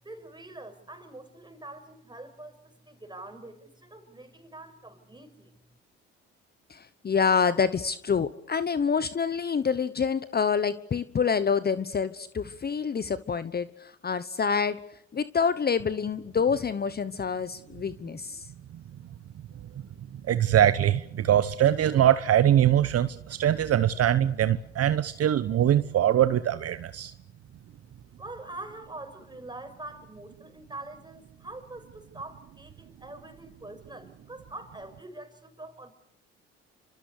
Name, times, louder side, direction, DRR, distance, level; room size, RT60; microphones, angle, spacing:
voice 1, 0.0-5.5 28.2-35.9, right 2 dB, 15° right, 6.3 m, -44 dB
voice 2, 6.7-14.8 15.1-18.5, left 6 dB, 30° left, 1.1 m, -27 dB
voice 3, 20.3-27.1, right 11 dB, 50° right, 1.0 m, -22 dB
26.0 x 25.5 x 6.8 m
hypercardioid pair, 60°, 31 cm